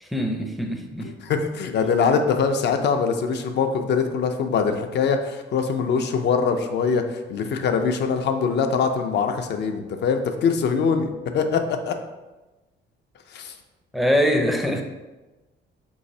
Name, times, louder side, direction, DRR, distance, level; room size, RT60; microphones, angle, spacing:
voice 1, 0.0-1.1 13.9-14.8, equal, ahead, 3 dB, 0.5 m, -23 dB
voice 2, 1.0-12.0 13.3-13.5, left 5 dB, 60° left, 6 dB, 0.4 m, -23 dB
3.9 x 3.1 x 2.7 m, 1.1 s
cardioid pair, 90°, 20 cm